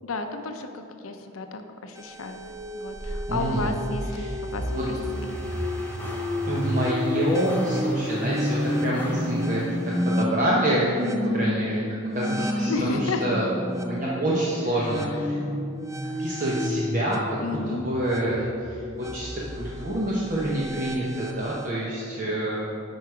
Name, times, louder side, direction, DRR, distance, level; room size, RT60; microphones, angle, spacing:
voice 1, 0.0-2.4 2.7-5.4 11.0-11.2 12.7-13.2 15.3-15.4 17.3-17.8, left 3 dB, 85° left, 6 dB, 0.7 m, -33 dB
sound 1, 2.0-21.7, left 1 dB, 15° right, 0.4 m, -31 dB
voice 2, 3.3-3.7 4.1-4.9 6.5-10.9 11.3-11.8 12.1-13.5 13.8-15.4 16.2-22.6, right 1 dB, 40° right, -6 dB, 0.9 m, -27 dB
sound 2, 4.5-10.2, left 1 dB, 10° left, 0.8 m, -42 dB
9.3 x 4.8 x 4.8 m, 2.5 s
head